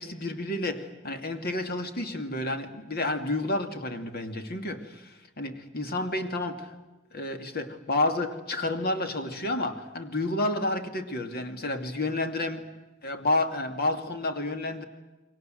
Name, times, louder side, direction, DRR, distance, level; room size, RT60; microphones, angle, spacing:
voice 1, 0.0-6.7 7.1-12.6 13.0-14.8, left 2 dB, 50° left, 6 dB, 2.6 m, -30 dB
29.0 x 23.5 x 7.9 m, 1.1 s
head